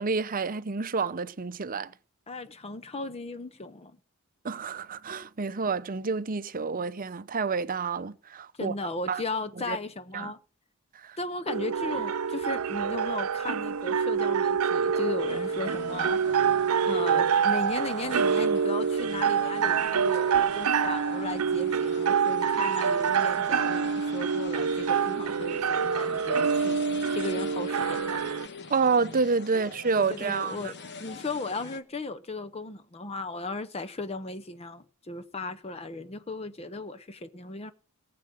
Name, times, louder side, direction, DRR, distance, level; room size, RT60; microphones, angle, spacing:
voice 1, 0.0-1.9 4.4-8.7 9.1-9.2 9.7-9.8 10.1-10.3 11.0-11.2 28.7-30.7, right 4 dB, 40° right, 0.7 m, -28 dB
voice 2, 2.3-3.9 8.6-10.4 11.2-26.8 27.1-28.2 29.5-29.7 30.0-37.7, left 2 dB, 30° left, 0.7 m, -36 dB
sound 1, 11.5-28.5, right 6 dB, 75° right, 0.6 m, -26 dB
sound 2, 15.3-31.8, left 4 dB, 50° left, 1.2 m, -45 dB
18.5 x 7.7 x 6.4 m
head